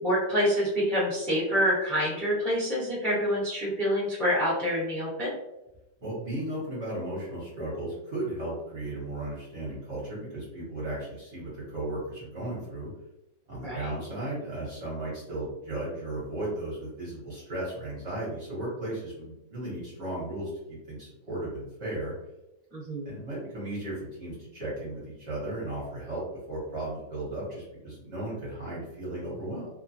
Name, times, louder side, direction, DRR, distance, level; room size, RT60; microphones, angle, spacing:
voice 1, 0.0-5.3 13.6-13.9 22.7-23.1, equal, ahead, -6 dB, 0.6 m, -27 dB
voice 2, 6.0-12.9 13.5-22.1 23.0-26.2 26.5-29.7, right 1 dB, 45° right, -7 dB, 1.0 m, -35 dB
3.0 x 2.2 x 2.6 m, 0.96 s
omnidirectional pair, 2.0 m